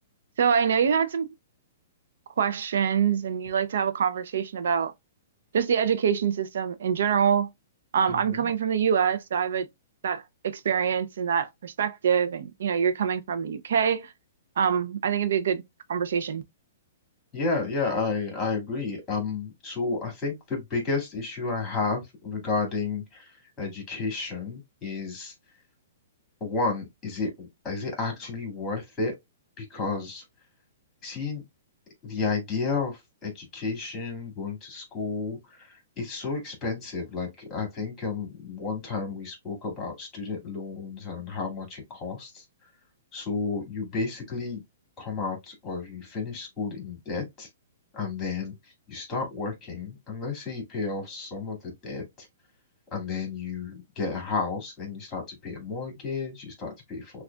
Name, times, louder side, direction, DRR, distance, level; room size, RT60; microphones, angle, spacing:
voice 1, 0.4-1.3 2.4-4.9 5.5-7.5 7.9-9.7 10.0-14.1 14.6-15.6 15.9-16.4, right 7 dB, 75° right, 0.5 m, -25 dB
voice 2, 8.1-8.5 17.3-25.3 26.4-29.1 29.6-30.2 31.0-31.4 32.0-42.5 43.1-44.6 45.0-47.5 47.9-52.3 52.9-57.2, left 4 dB, 15° left, 2.1 m, -32 dB
6.1 x 2.3 x 2.3 m
hypercardioid pair, 155°, 0 cm